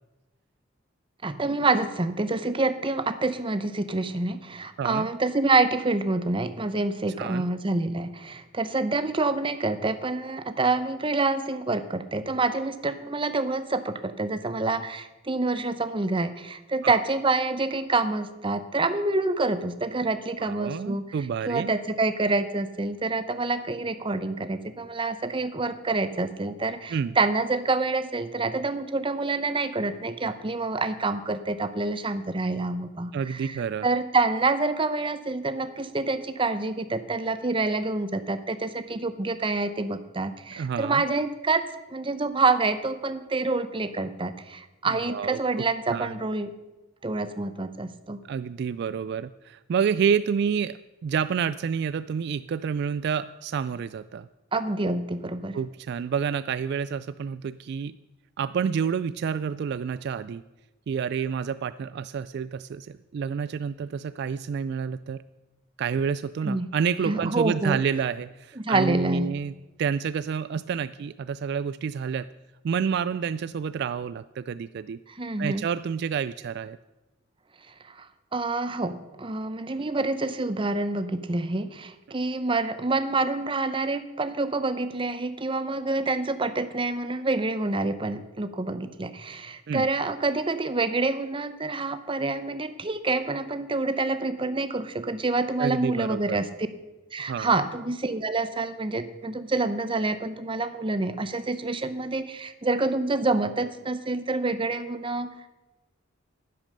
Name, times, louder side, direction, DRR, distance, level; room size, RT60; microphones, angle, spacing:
voice 1, 1.2-21.0 21.5-41.6 41.9-46.5 47.0-48.2 54.5-55.6 66.4-66.7 67.0-67.8 68.6-69.3 75.1-75.7 77.8-96.5 97.1-105.5, right 3 dB, 25° right, 11 dB, 0.7 m, -27 dB
voice 2, 4.8-5.1 7.2-7.5 16.8-17.0 20.4-21.7 26.9-27.2 33.1-33.9 40.6-41.0 44.9-45.6 45.9-46.2 48.3-54.3 55.5-57.9 58.4-60.4 60.9-65.2 65.8-69.5 69.8-72.3 72.6-75.0 75.4-76.8 89.7-89.9 95.6-96.4 97.3-97.5, right 6 dB, 55° right, 15 dB, 0.3 m, -29 dB
10.5 x 10.5 x 6.6 m, 1.1 s
head